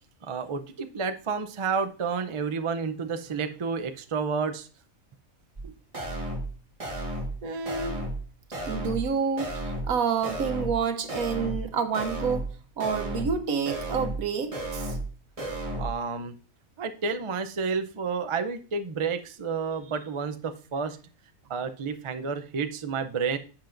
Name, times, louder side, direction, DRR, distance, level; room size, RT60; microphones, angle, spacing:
voice 1, 0.2-4.7 15.8-16.3 16.8-21.0 21.5-23.4, right 5 dB, 45° right, 8 dB, 0.4 m, -30 dB
sound 1, 5.6-5.7 5.9-6.5 6.8-7.4 7.7-8.2 8.5-9.1 9.4-9.9 10.2-10.8 11.1-11.7 11.9-12.5 12.8-13.4 13.7-14.2 14.5-15.1 15.4-15.9, right 1 dB, 25° right, 1.6 m, -33 dB
voice 2, 7.4-8.0 8.7-12.5 12.8-15.0, right 6 dB, 80° right, 8 dB, 1.4 m, -29 dB
11.5 x 7.2 x 2.6 m, 0.38 s
omnidirectional pair, 1.5 m